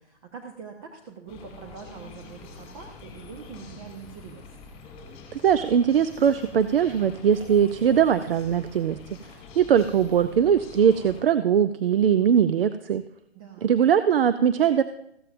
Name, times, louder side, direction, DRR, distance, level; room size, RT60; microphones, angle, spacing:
voice 1, 0.0-4.5 13.3-13.8, right 6 dB, 35° right, 2 dB, 1.1 m, -43 dB
sound 1, 1.3-11.2, left 4 dB, 20° left, 3.3 m, -45 dB
voice 2, 5.3-9.0 9.6-13.0 13.6-14.8, right 8 dB, 60° right, 11 dB, 0.5 m, -21 dB
15.0 x 13.0 x 2.6 m, 0.77 s
figure-of-eight pair, 135°, 33 cm